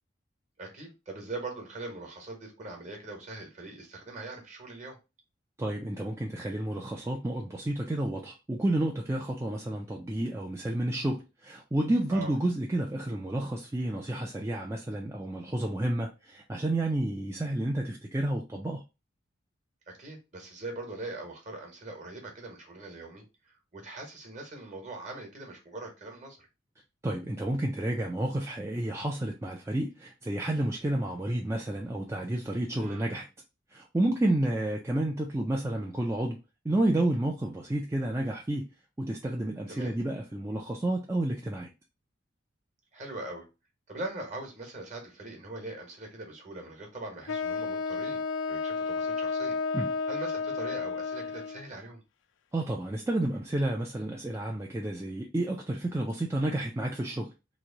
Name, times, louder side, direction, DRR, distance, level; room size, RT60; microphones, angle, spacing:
voice 1, 0.6-5.0 12.1-12.4 19.9-26.5 32.7-33.2 39.7-39.9 42.9-43.5 43.9-49.6 50.1-52.0, right 2 dB, 35° right, 1.1 m, -41 dB
voice 2, 5.6-18.8 27.0-33.3 33.7-36.4 36.6-38.7 39.0-41.7 49.7-49.9 52.5-57.3, right 1 dB, 15° right, 0.3 m, -30 dB
Wind instrument woodwind instrument, 47.3-51.7, left 4 dB, 70° left, 0.3 m, -32 dB
3.1 x 2.6 x 3.7 m
head